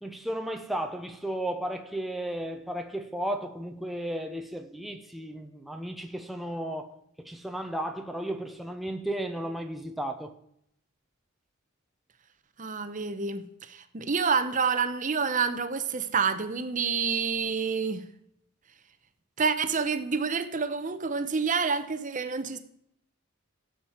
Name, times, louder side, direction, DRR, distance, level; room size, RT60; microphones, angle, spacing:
voice 1, 0.0-6.9 7.2-10.3, right 1 dB, ahead, 0.7 m, -34 dB
voice 2, 12.6-18.0 19.4-22.6, right 5 dB, 35° right, 0.9 m, -28 dB
14.5 x 7.4 x 4.5 m
head